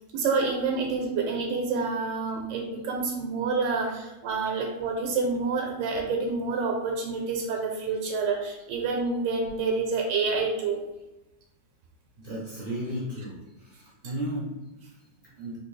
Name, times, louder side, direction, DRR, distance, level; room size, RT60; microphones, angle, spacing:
voice 1, 0.1-10.8, right 4 dB, 85° right, 1 dB, 1.3 m, -28 dB
voice 2, 12.2-15.6, equal, 60° right, -6 dB, 0.5 m, -35 dB
3.7 x 2.6 x 3.1 m, 1.0 s
omnidirectional pair, 1.9 m